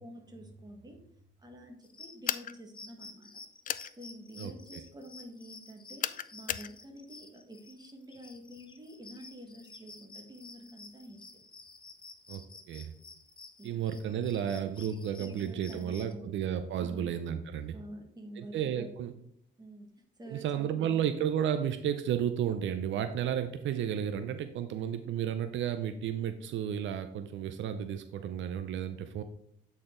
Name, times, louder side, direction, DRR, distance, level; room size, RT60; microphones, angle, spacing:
voice 1, 0.0-3.4 4.0-11.3 13.6-13.8 15.2-16.4 16.8-17.1 17.7-19.1 19.6-21.1, right 1 dB, 20° right, 2 dB, 1.6 m, -48 dB
sound 1, 1.8-16.1, left 3 dB, 25° left, 0.8 m, -52 dB
sound 2, 2.3-2.5 3.7-3.9 6.0-6.7, left 9 dB, 45° left, 0.4 m, -33 dB
voice 2, 4.4-4.8 12.3-12.9 13.6-17.7 18.4-19.1 20.3-29.2, right 9 dB, 75° right, 9 dB, 0.5 m, -33 dB
8.7 x 4.2 x 3.7 m, 0.71 s
cardioid pair, 90°, 20 cm